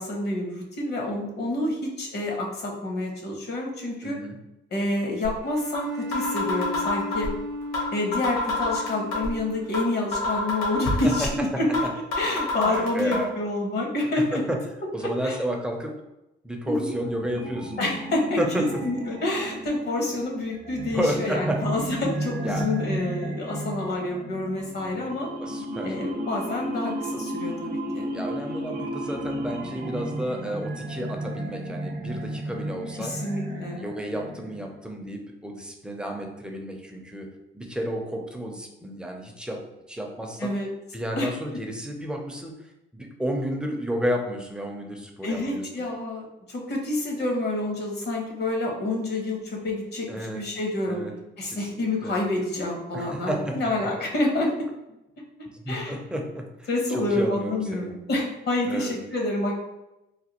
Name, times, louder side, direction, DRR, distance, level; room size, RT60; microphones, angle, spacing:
voice 1, 0.0-4.2 4.7-7.3 7.9-11.8 12.2-14.4 15.2-15.4 16.7-16.9 17.8-25.3 25.8-28.1 33.0-33.8 40.4-40.7 41.2-41.3 45.2-51.0 51.4-54.5 55.7-56.0 56.7-59.6, left 2 dB, 55° left, 0 dB, 0.9 m, -28 dB
voice 2, 4.0-4.4 11.0-11.6 12.6-13.3 14.1-14.6 14.9-15.9 16.4-17.8 18.4-18.6 20.9-21.6 22.4-22.7 25.4-26.0 28.1-33.1 33.8-37.3 37.5-39.6 39.9-40.5 40.9-42.5 42.9-45.7 50.1-50.4 50.9-51.1 51.5-52.1 52.9-53.6 53.8-53.9 55.5-57.9 58.7-58.9, equal, 5° right, 1 dB, 0.5 m, -31 dB
sound 1, 5.2-5.3 5.7-5.8 6.1-7.3 7.7-9.3 9.7-9.8 10.1-11.3 11.7-11.8 12.1-13.1, left 3 dB, 80° left, 1.3 m, -28 dB
Bowed string instrument, 5.4-10.1, left 1 dB, 90° right, 0.5 m, -35 dB
sound 2, 16.8-34.8, right 1 dB, 55° right, 0.7 m, -33 dB
3.2 x 2.2 x 2.9 m, 0.93 s
cardioid pair, 90°, 20 cm